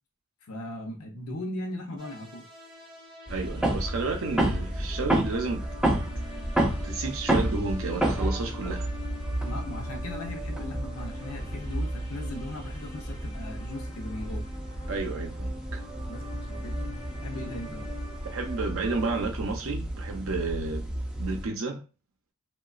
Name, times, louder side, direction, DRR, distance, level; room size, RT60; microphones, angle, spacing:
voice 1, 0.4-2.5 9.4-14.4 16.1-16.7 17.2-17.9, left 1 dB, 80° left, 0.6 m, -38 dB
sound 1, 2.0-19.2, left 1 dB, 20° right, 0.8 m, -45 dB
sound 2, 3.3-21.5, right 1 dB, 5° right, 0.3 m, -31 dB
voice 2, 3.3-5.7 5.9-6.1 6.8-8.9 14.9-15.8 18.2-20.9 21.2-21.8, right 3 dB, 65° right, 0.6 m, -31 dB
2.9 x 2.1 x 2.4 m
head